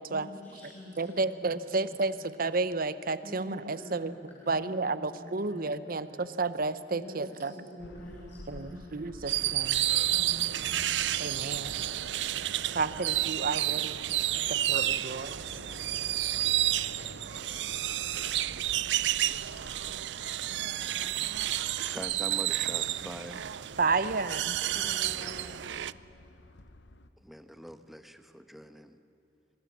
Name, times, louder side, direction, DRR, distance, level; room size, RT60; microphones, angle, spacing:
voice 1, 0.1-2.2 3.2-6.3 6.9-8.8 10.1-10.7 24.7-25.5, left 1 dB, 45° left, -5 dB, 5.6 m, -47 dB
voice 2, 1.0-4.1 4.5-7.5 8.5-9.9 11.2-11.8 12.7-14.0 14.5-15.4 23.8-24.6, right 3 dB, 55° right, 13 dB, 0.9 m, -31 dB
sound 1, 7.8-27.1, left 2 dB, 80° left, 1.0 m, -50 dB
sound 2, 9.3-25.9, right 13 dB, 85° right, 0.5 m, -30 dB
voice 3, 21.9-23.4 27.2-29.0, equal, ahead, 8 dB, 1.1 m, -43 dB
26.0 x 22.0 x 7.5 m, 2.9 s
head